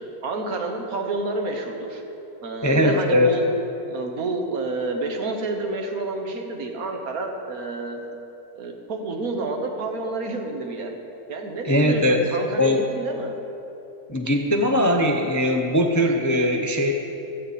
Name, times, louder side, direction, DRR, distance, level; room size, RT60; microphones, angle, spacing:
voice 1, 0.2-2.0 2.4-3.5 3.9-8.0 8.6-10.9 11.3-13.3, right 2 dB, 70° right, 3 dB, 1.8 m, -29 dB
voice 2, 2.6-3.3 11.6-12.2 12.6-12.9 14.1-16.9, left 1 dB, 20° left, 3 dB, 0.5 m, -20 dB
16.0 x 13.5 x 4.2 m, 3.0 s
omnidirectional pair, 1.6 m